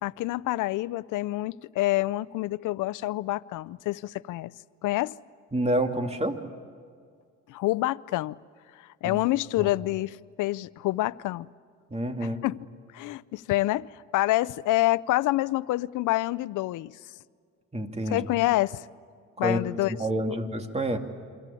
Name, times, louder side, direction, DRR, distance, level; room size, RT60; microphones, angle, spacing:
voice 1, 0.0-4.5 4.8-5.2 7.5-8.4 8.8-11.5 12.2-12.6 12.9-17.0 18.1-18.8 19.4-20.0, left 17 dB, 85° left, 0.6 m, -27 dB
voice 2, 5.5-6.4 9.0-9.2 9.6-9.7 11.9-12.4 17.7-18.3 19.4-19.6 20.0-21.0, right 1 dB, 20° right, 2.7 m, -28 dB
28.0 x 24.5 x 8.5 m
cardioid pair, 90°, 30 cm